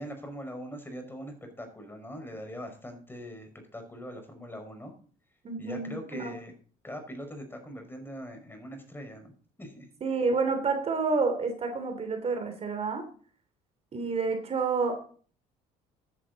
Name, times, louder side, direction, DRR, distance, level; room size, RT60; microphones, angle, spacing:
voice 1, 0.0-4.9 5.6-6.5 6.8-9.3 9.6-9.9, equal, 15° left, 6 dB, 5.4 m, -41 dB
voice 2, 5.4-6.3 10.0-13.0 13.9-15.0, right 4 dB, 40° right, 6 dB, 3.0 m, -29 dB
14.0 x 10.5 x 4.1 m, 0.43 s
supercardioid pair, 80°, 16 cm